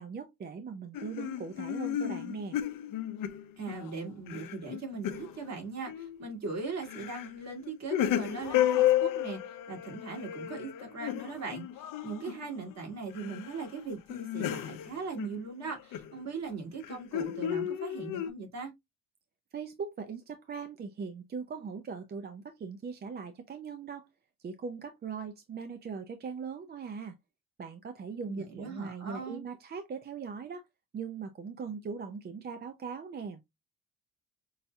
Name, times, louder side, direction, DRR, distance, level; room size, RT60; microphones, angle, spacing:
voice 1, 0.0-2.6 19.5-24.1 24.4-27.1 27.6-30.6 30.9-33.4, right 5 dB, 30° right, 0.5 m, -40 dB
sound 1, 0.9-3.9 4.3-5.4 5.9-6.2 6.8-7.3 7.6-12.7 13.1-13.6 13.9-16.1 16.8-18.3, left 12 dB, 65° left, 0.7 m, -32 dB
voice 2, 3.6-18.7 28.2-29.4, right 4 dB, 50° right, 2.1 m, -39 dB
5.5 x 2.7 x 2.3 m
cardioid pair, 125°, 35 cm